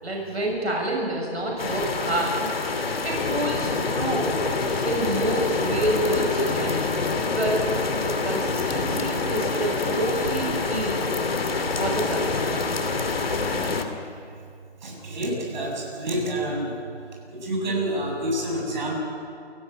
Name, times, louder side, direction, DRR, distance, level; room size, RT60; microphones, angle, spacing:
voice 1, 0.0-2.6 3.0-4.4 4.8-7.0 7.3-11.1 11.8-12.7, right 1 dB, 80° right, -1 dB, 6.5 m, -28 dB
sound 1, 1.6-13.9, left 4 dB, 65° left, 2.6 m, -26 dB
voice 2, 14.8-16.7 17.3-19.0, right 1 dB, 45° right, -2 dB, 7.8 m, -28 dB
28.0 x 12.5 x 8.5 m, 2.3 s
figure-of-eight pair, 155°, 32 cm